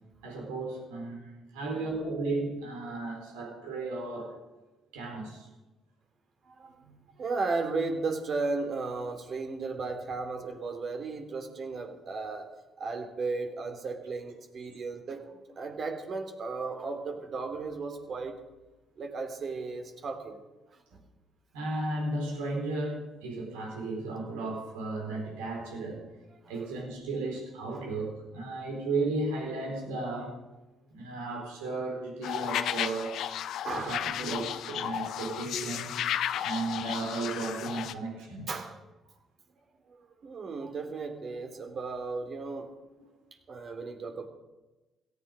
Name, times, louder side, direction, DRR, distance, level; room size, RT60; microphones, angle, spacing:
voice 1, 0.2-4.3 4.9-5.5 21.5-26.0 26.5-30.4 30.9-33.3 33.7-36.0 36.4-38.5, right 2 dB, 85° right, 0 dB, 4.3 m, -34 dB
voice 2, 6.4-12.5 12.8-18.4 19.0-20.4 20.7-21.0 26.4-26.5 27.7-27.8 33.6-34.1 38.5-38.8 39.9-42.7 43.5-44.3, right 3 dB, 55° right, 5 dB, 3.1 m, -35 dB
sound 1, 32.2-37.9, left 10 dB, 65° left, 0.8 m, -33 dB
17.0 x 14.5 x 5.1 m, 1.1 s
hypercardioid pair, 50°, 0 cm